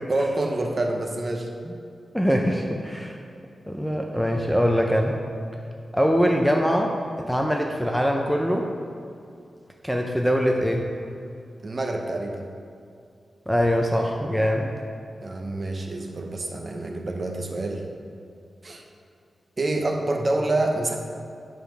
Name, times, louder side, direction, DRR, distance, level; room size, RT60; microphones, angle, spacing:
voice 1, 0.1-1.5 11.6-12.4 15.2-17.8 18.6-18.8 19.6-21.0, right 2 dB, 35° right, 2 dB, 0.8 m, -27 dB
voice 2, 2.1-3.2 3.7-5.2 5.9-7.0 7.3-8.7 9.8-10.9 13.5-14.7, equal, ahead, 1 dB, 0.5 m, -22 dB
9.2 x 5.0 x 5.7 m, 2.4 s
wide cardioid pair, 150°, 0 cm